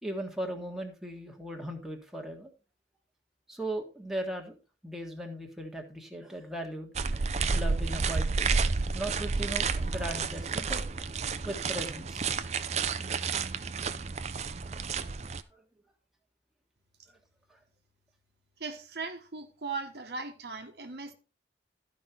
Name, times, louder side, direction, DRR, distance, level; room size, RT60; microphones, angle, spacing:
voice 1, 0.0-2.5 3.5-4.6 4.8-8.6 8.9-10.8 11.4-12.3 13.2-13.3 15.5-15.6 17.5-17.6, right 1 dB, 5° right, 1.5 m, -38 dB
sound 1, 6.9-15.4, right 4 dB, 40° right, 0.5 m, -31 dB
voice 2, 18.6-21.1, right 4 dB, 65° right, 1.2 m, -38 dB
13.0 x 5.3 x 4.3 m
head